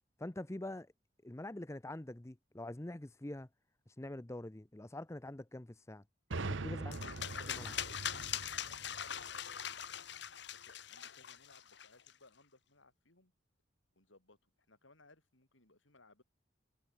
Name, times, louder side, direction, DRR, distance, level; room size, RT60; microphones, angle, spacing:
voice 1, 0.2-0.9 1.2-3.5 4.0-6.0 6.4-7.0 7.5-7.8, left 1 dB, 15° left, 0.7 m, -45 dB
sound 1, 6.3-10.0, right 3 dB, 80° right, 1.0 m, -43 dB
voice 2, 6.7-7.3 8.6-13.3 14.0-16.2, left 2 dB, 90° left, 6.8 m, -64 dB
sound 2, 6.9-12.1, left 9 dB, 65° left, 1.9 m, -42 dB
head